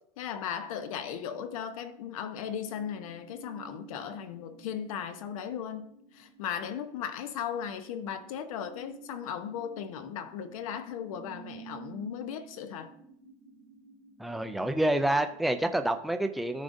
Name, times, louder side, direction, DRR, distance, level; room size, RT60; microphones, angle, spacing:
voice 1, 0.2-12.9, left 8 dB, 90° left, 0.9 m, -37 dB
sound 1, 0.6-15.9, right 5 dB, 40° left, 1.8 m, -53 dB
voice 2, 14.2-16.6, right 1 dB, ahead, 0.3 m, -28 dB
13.5 x 5.0 x 2.6 m
supercardioid pair, 165°, 17 cm